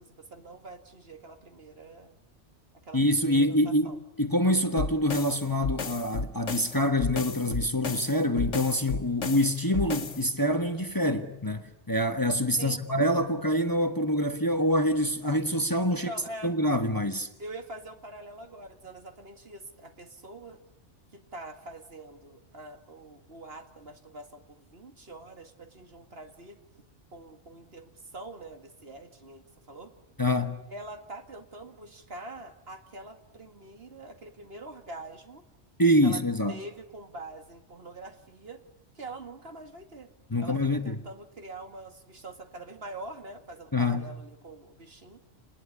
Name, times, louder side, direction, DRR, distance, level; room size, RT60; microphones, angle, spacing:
voice 1, 0.0-2.1 2.8-4.0 12.6-12.8 15.9-16.6 17.4-20.6 21.1-26.6 27.1-29.9 30.7-35.4 36.0-36.2 36.5-38.6 38.9-40.1 40.4-45.2, right 2 dB, 55° right, 2.3 m, -44 dB
voice 2, 2.9-16.1 16.4-17.3 30.2-30.6 35.8-36.6 40.3-40.9 43.7-44.0, left 1 dB, 20° left, 1.4 m, -26 dB
sound 1, 4.8-10.3, left 3 dB, 90° left, 1.8 m, -33 dB
29.0 x 20.5 x 9.8 m
omnidirectional pair, 1.2 m